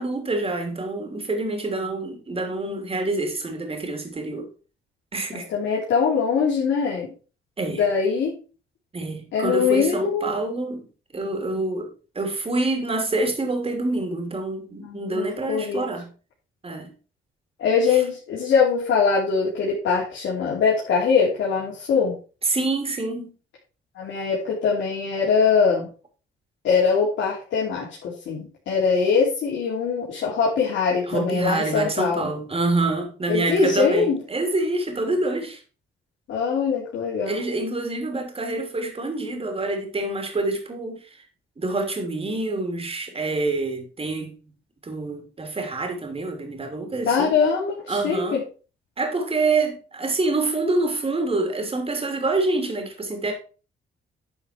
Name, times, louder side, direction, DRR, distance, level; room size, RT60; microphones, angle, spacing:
voice 1, 0.0-4.5 5.1-5.5 7.6-7.9 8.9-10.8 11.1-11.9 12.1-16.1 16.6-16.9 22.4-23.3 31.1-35.6 37.3-41.2 41.6-44.3 44.8-47.3 47.9-48.4 49.0-53.3, right 2 dB, 30° right, 3.0 m, -26 dB
voice 2, 5.3-7.1 7.7-8.4 9.3-10.3 14.8-15.9 17.6-22.2 23.9-25.9 26.6-32.3 33.3-34.2 36.3-37.4 47.1-48.4, left 5 dB, 75° left, 3.0 m, -22 dB
10.0 x 5.4 x 4.5 m
cardioid pair, 90°, 20 cm